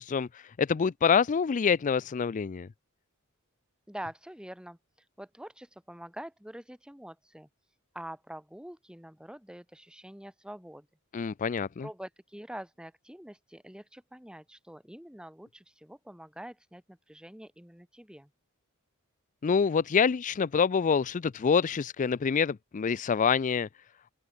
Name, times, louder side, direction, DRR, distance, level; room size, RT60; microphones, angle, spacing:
voice 1, 0.0-2.7 11.1-11.9 19.4-23.7, left 6 dB, 35° left, 0.4 m, -26 dB
voice 2, 3.9-4.8 5.2-7.5 7.9-10.9 11.8-18.3, right 1 dB, 5° right, 2.0 m, -45 dB
open air
head